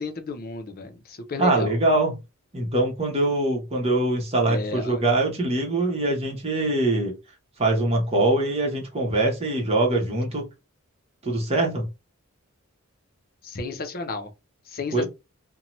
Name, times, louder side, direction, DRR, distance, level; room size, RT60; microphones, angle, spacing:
voice 1, 0.0-1.7 4.5-5.0 13.4-14.3 14.7-15.1, left 3 dB, 45° left, 0.6 m, -32 dB
voice 2, 1.4-2.2 2.5-7.1 7.6-10.4 11.2-11.9 14.9-15.1, right 2 dB, 30° right, 0.9 m, -23 dB
2.7 x 2.2 x 3.0 m
head